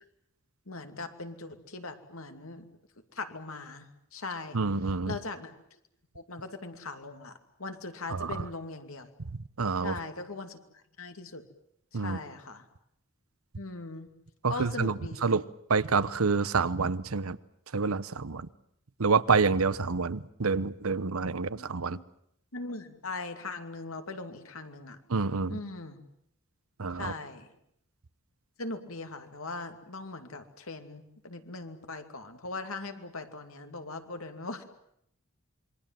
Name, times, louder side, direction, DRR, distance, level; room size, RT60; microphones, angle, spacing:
voice 1, 0.7-2.7 3.1-4.6 5.1-5.5 6.1-7.3 7.6-9.1 9.8-10.6 11.0-11.4 11.9-12.6 13.5-14.1 14.5-15.4 21.5-22.0 22.5-25.0 25.5-26.0 26.9-27.5 28.6-34.6, left 3 dB, 80° left, 7 dB, 2.6 m, -40 dB
voice 2, 4.5-5.1 8.1-8.4 9.6-10.0 11.9-12.2 14.4-15.4 15.7-17.4 17.7-18.5 19.0-22.0 25.1-25.6 26.8-27.1, right 4 dB, 85° right, 16 dB, 0.9 m, -27 dB
27.0 x 23.0 x 7.6 m, 0.73 s
head